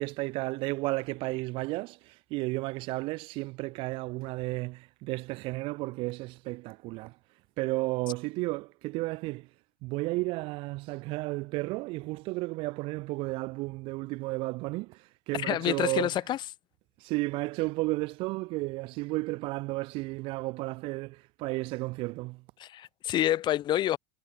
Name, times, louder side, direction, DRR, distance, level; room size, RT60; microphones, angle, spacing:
voice 1, 0.0-7.2 7.6-9.5 9.8-16.1 17.0-22.4, right 22 dB, 50° right, 0.6 m, -33 dB
voice 2, 15.3-16.4 22.6-24.0, left 12 dB, 40° left, 2.9 m, -28 dB
hypercardioid pair, 85°, 11 cm